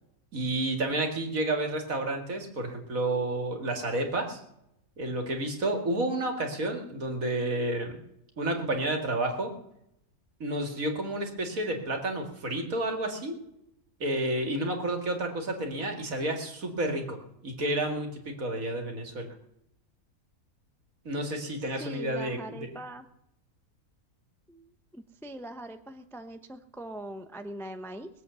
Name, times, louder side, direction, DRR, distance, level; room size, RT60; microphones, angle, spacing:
voice 1, 0.3-4.4 5.0-8.0 8.4-9.5 10.4-13.4 14.0-17.2 17.4-19.3 21.0-22.8, right 1 dB, 65° right, 4 dB, 2.5 m, -30 dB
voice 2, 21.8-23.1 24.5-28.1, right 1 dB, ahead, 8 dB, 0.6 m, -42 dB
20.5 x 8.0 x 6.9 m, 0.80 s
omnidirectional pair, 1.6 m